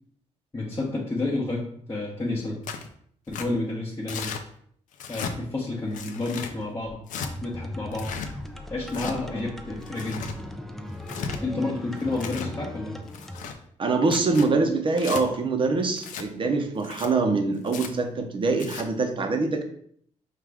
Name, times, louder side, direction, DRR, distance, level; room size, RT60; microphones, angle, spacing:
voice 1, 0.5-2.6 3.3-4.3 5.1-7.0 7.4-8.1 8.7-10.2 11.4-13.0, left 2 dB, 20° left, -5 dB, 0.8 m, -30 dB
Tearing, 2.6-2.9 3.3-3.5 4.1-4.4 4.9-5.3 5.9-6.5 7.1-7.3 7.9-8.3 8.9-9.2 9.8-10.4 10.9-11.4 12.0-12.5 13.1-13.6 14.0-14.5 15.0-15.2 16.0-16.3 16.8-17.1 17.7-17.9 18.5-18.8, left 6 dB, 80° left, 0.5 m, -35 dB
sound 1, 7.2-13.5, left 1 dB, ahead, 0.4 m, -38 dB
voice 2, 13.8-19.6, right 3 dB, 40° right, 5 dB, 0.7 m, -24 dB
5.0 x 2.4 x 3.4 m, 0.63 s
cardioid pair, 105°, 13 cm